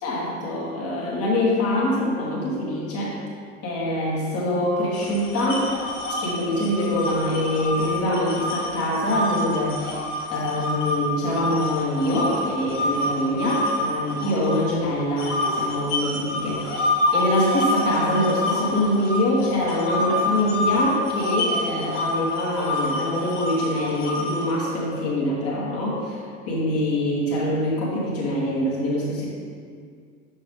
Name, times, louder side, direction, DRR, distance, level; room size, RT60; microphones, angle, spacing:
voice 1, 0.0-3.2 3.6-5.7 6.2-10.1 10.3-26.2 26.5-29.3, left 1 dB, 35° left, -4 dB, 2.0 m, -24 dB
sound 1, 4.9-10.9 11.3-14.7 15.2-24.5, left 1 dB, 65° left, 1.5 m, -27 dB
7.4 x 6.3 x 3.5 m, 2.1 s
figure-of-eight pair, 75°, 40 cm